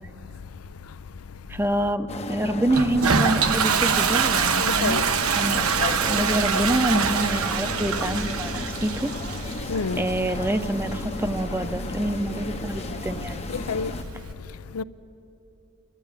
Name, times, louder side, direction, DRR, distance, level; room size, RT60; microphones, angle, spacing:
voice 1, 1.5-5.0 5.4-9.1 10.0-13.5, right 1 dB, 10° right, 0.7 m, -26 dB
sound 1, 2.1-14.0, left 3 dB, 30° left, 0.7 m, -34 dB
Toilet flush, 2.7-14.3, right 6 dB, 80° right, 0.9 m, -26 dB
voice 2, 4.6-5.0 9.7-10.0 13.5-13.9 14.7-14.8, left 5 dB, 80° left, 0.5 m, -28 dB
29.5 x 12.5 x 9.7 m
head